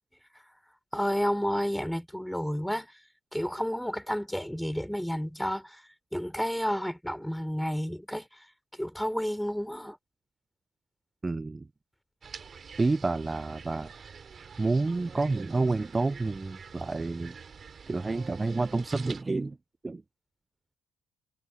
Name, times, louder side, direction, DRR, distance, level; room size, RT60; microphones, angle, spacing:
voice 1, 0.9-2.9 3.3-5.8 6.1-8.3 8.8-10.0, equal, ahead, 4.1 m, -31 dB
voice 2, 11.2-11.7 12.8-14.0 14.6-17.3 17.9-19.6 19.8-20.0, right 3 dB, 25° right, 0.7 m, -29 dB
sound 1, 12.2-19.2, right 6 dB, 45° right, 4.1 m, -47 dB
hypercardioid pair, 60°, 0 cm